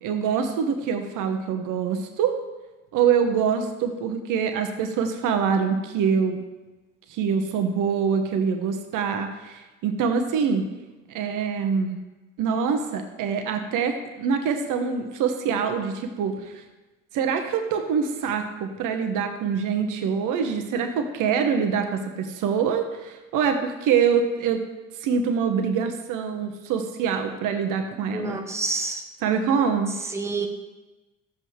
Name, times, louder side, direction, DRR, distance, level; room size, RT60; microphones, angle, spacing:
voice 1, 0.0-2.4 2.9-6.4 7.1-10.7 11.1-12.0 12.4-16.6 17.1-24.6 25.0-28.4 29.2-29.9, right 6 dB, 50° right, 6 dB, 1.0 m, -25 dB
voice 2, 28.1-29.0 30.0-30.5, right 3 dB, 5° right, 4 dB, 1.0 m, -28 dB
13.0 x 7.7 x 3.2 m, 1.1 s
figure-of-eight pair, 55°, 39 cm